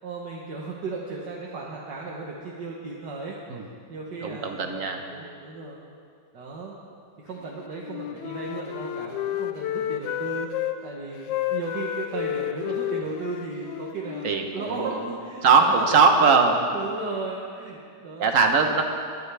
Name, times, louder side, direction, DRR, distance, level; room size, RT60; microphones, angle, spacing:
voice 1, 0.0-3.4 3.9-5.8 6.3-6.8 7.2-14.3 14.5-15.9 16.6-18.3, right 3 dB, 75° right, -3 dB, 1.8 m, -35 dB
voice 2, 4.2-5.0 14.2-15.1 15.4-16.7 18.2-18.8, right 4 dB, 50° right, 4 dB, 1.3 m, -20 dB
Wind instrument woodwind instrument, 7.8-10.8 11.3-15.1, left 11 dB, 85° left, 1.3 m, -31 dB
21.0 x 11.0 x 3.4 m, 2.3 s
omnidirectional pair, 1.9 m